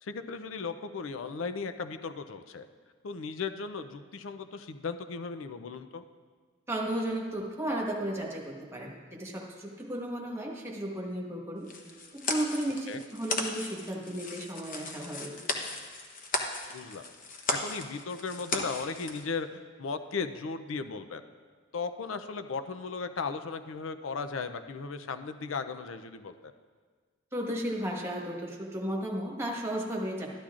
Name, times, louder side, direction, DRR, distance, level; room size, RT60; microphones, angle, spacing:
voice 1, 0.0-2.7 3.0-6.0 12.9-13.0 16.7-17.0 17.5-21.2 21.7-26.4, left 4 dB, 85° left, 9 dB, 0.5 m, -36 dB
voice 2, 6.7-11.7 12.1-15.3 27.3-30.3, right 1 dB, 15° right, -1 dB, 1.3 m, -34 dB
sound 1, 11.6-19.2, left 3 dB, 45° left, 0.9 m, -36 dB
13.0 x 11.5 x 2.5 m, 1.5 s
head